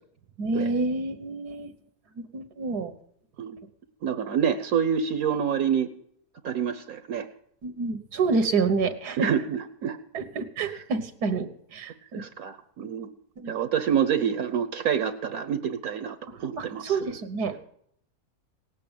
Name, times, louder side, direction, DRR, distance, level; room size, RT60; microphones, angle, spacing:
voice 1, 0.4-1.7 2.2-2.9 7.6-9.3 10.1-12.2 13.4-13.5 16.3-17.6, right 4 dB, 85° right, 9 dB, 1.7 m, -28 dB
voice 2, 4.0-5.9 6.4-7.3 9.2-10.0 10.6-10.8 12.1-13.1 13.5-17.1, right 8 dB, 65° right, 9 dB, 1.2 m, -27 dB
18.0 x 8.4 x 8.9 m, 0.71 s
omnidirectional pair, 1.7 m